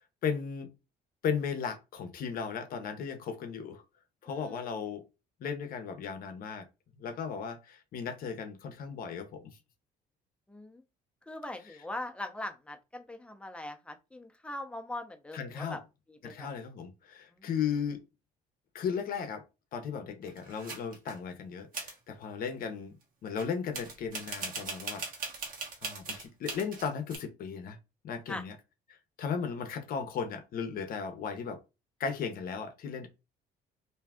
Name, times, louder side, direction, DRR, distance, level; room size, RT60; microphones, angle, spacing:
voice 1, 0.2-0.7 1.2-3.8 4.2-5.0 5.4-6.7 7.0-9.6 11.6-11.8 15.3-15.8 16.2-18.0 18.7-19.4 19.7-22.9 23.2-25.0 25.8-27.8 28.0-28.6 29.2-31.6 32.0-33.1, left 6 dB, 60° left, 0.7 m, -36 dB
voice 2, 4.3-4.6 10.5-10.8 11.3-15.8 16.2-16.5 28.3-28.4, left 1 dB, 5° left, 0.6 m, -41 dB
sound 1, 20.2-21.2 21.7-22.0 23.4-23.5 23.7-27.2, right 4 dB, 55° right, 1.2 m, -39 dB
2.6 x 2.4 x 3.5 m
cardioid pair, 110°, 17 cm